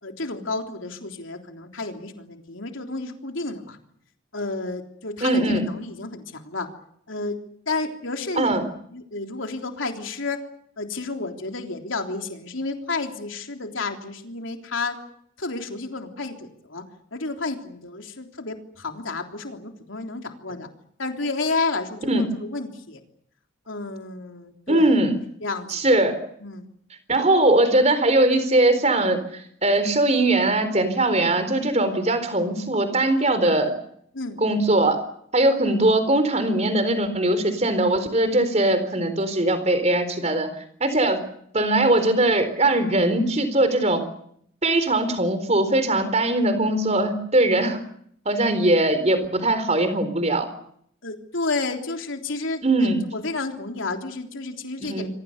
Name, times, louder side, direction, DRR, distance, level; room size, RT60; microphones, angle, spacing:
voice 1, 0.0-3.8 4.3-6.7 7.1-7.4 7.7-8.6 8.9-10.4 10.8-15.0 15.4-16.8 17.1-20.7 21.0-23.0 23.7-24.9 25.4-25.7 26.4-26.7 34.1-34.4 51.0-55.1, left 3 dB, 75° left, 4 dB, 3.5 m, -31 dB
voice 2, 5.2-5.6 8.4-8.6 22.1-22.2 24.7-25.2 25.7-26.2 27.1-33.7 34.4-35.0 35.3-40.5 40.8-41.2 41.5-44.0 44.6-47.8 48.3-50.5 52.6-53.0 54.8-55.1, right 1 dB, 35° right, 10 dB, 4.1 m, -20 dB
27.5 x 24.0 x 6.7 m, 0.69 s
head